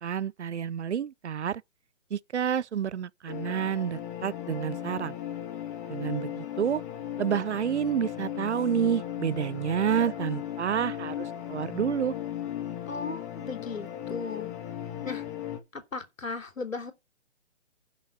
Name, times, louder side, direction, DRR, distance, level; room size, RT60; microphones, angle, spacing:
voice 1, 0.0-1.6 2.1-5.1 5.9-6.8 7.2-12.2, right 8 dB, 60° right, 0.6 m, -29 dB
sound 1, 3.3-15.6, left 11 dB, 10° left, 0.9 m, -36 dB
voice 2, 12.9-14.5 15.0-15.3 15.7-16.9, left 4 dB, 80° left, 3.4 m, -36 dB
11.0 x 6.2 x 5.5 m
hypercardioid pair, 155°, 39 cm